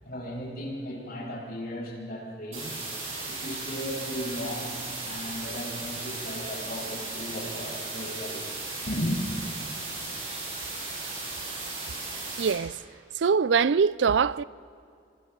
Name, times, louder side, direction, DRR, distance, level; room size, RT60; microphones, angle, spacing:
voice 1, 0.0-2.7 3.3-8.6 8.8-9.2, equal, 55° left, 7.9 m, -35 dB
sound 1, 2.5-12.5, right 3 dB, 40° right, 7.5 m, -36 dB
voice 2, 12.4-12.8 13.1-14.4, right 6 dB, 80° right, 0.4 m, -23 dB
30.0 x 25.5 x 3.9 m
head